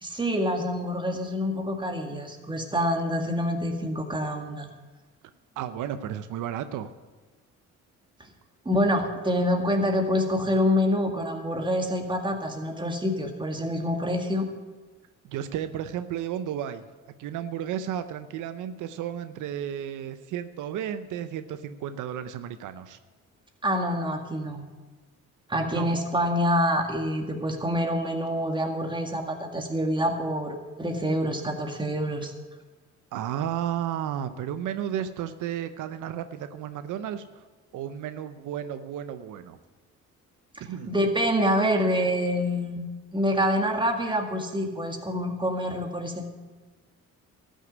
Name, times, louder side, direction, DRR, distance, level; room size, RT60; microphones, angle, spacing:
voice 1, 0.0-4.7 8.7-14.5 23.6-24.6 25.5-32.3 40.6-42.8 43.1-46.3, equal, 15° right, 3 dB, 1.9 m, -26 dB
voice 2, 5.6-6.9 15.2-16.8 17.2-23.0 25.7-25.9 33.1-37.4 37.7-39.6 40.7-40.9, right 10 dB, 85° right, 11 dB, 0.7 m, -33 dB
13.0 x 6.5 x 9.4 m, 1.3 s
cardioid pair, 90°, 30 cm